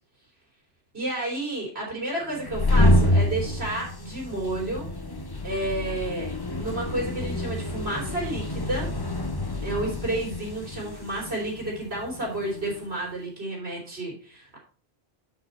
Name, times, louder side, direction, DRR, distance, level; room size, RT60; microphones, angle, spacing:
voice 1, 0.9-4.9 5.4-8.9 9.6-14.6, right 1 dB, 85° right, -4 dB, 4.2 m, -31 dB
sound 1, 2.3-12.8, left 1 dB, 25° left, 0.8 m, -27 dB
7.6 x 6.5 x 4.3 m, 0.38 s
omnidirectional pair, 1.0 m